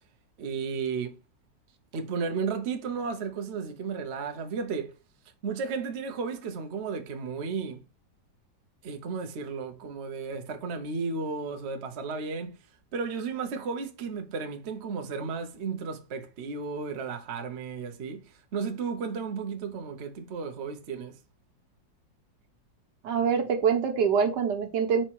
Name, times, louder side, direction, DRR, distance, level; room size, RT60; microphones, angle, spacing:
voice 1, 0.4-1.1 1.9-5.0 5.4-7.8 8.8-12.6 12.9-21.2, right 5 dB, 50° right, 0.9 m, -33 dB
voice 2, 23.0-25.0, right 6 dB, 70° right, 1.6 m, -25 dB
5.1 x 4.4 x 4.6 m
omnidirectional pair, 1.9 m